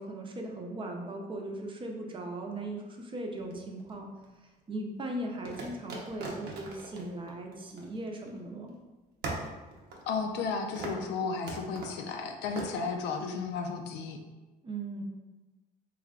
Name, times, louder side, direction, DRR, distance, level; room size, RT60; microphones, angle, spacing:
voice 1, 0.0-4.1 4.7-8.8 14.6-15.0, right 1 dB, 30° right, 1 dB, 0.6 m, -38 dB
sound 1, 3.4-4.3 5.5-8.4 8.7-8.8 9.2-10.5 10.8-11.1 11.5-12.0 12.6-12.7, right 2 dB, 75° right, 0.7 m, -40 dB
voice 2, 10.1-14.2, left 5 dB, 85° left, 4 dB, 0.5 m, -33 dB
3.2 x 2.2 x 3.6 m, 1.2 s
cardioid pair, 110°, 17 cm